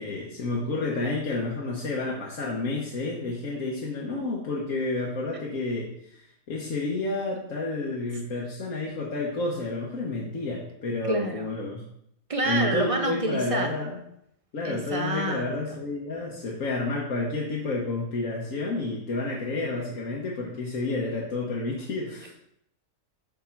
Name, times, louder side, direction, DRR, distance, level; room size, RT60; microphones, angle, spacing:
voice 1, 0.0-11.9 12.4-14.0 14.5-22.3, left 2 dB, 65° left, -3 dB, 1.4 m, -30 dB
voice 2, 11.1-11.5 12.3-13.7 14.6-15.5, right 2 dB, 40° right, 4 dB, 0.4 m, -27 dB
7.6 x 3.7 x 5.8 m, 0.75 s
omnidirectional pair, 1.6 m